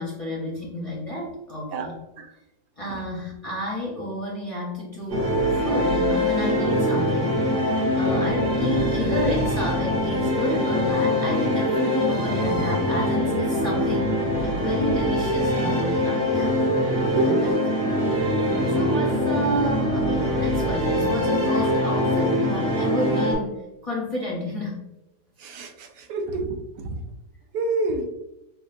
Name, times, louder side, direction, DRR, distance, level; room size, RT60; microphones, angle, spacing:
voice 1, 0.0-2.0 2.8-7.7 8.0-17.5 17.8-17.9 18.4-24.8, left 1 dB, 40° left, 0.5 m, -31 dB
sound 1, 5.1-23.3, equal, 40° right, 1.4 m, -23 dB
voice 2, 25.4-26.6 26.8-27.0 27.5-28.1, right 3 dB, 90° right, 1.3 m, -27 dB
6.0 x 2.3 x 2.4 m
omnidirectional pair, 1.8 m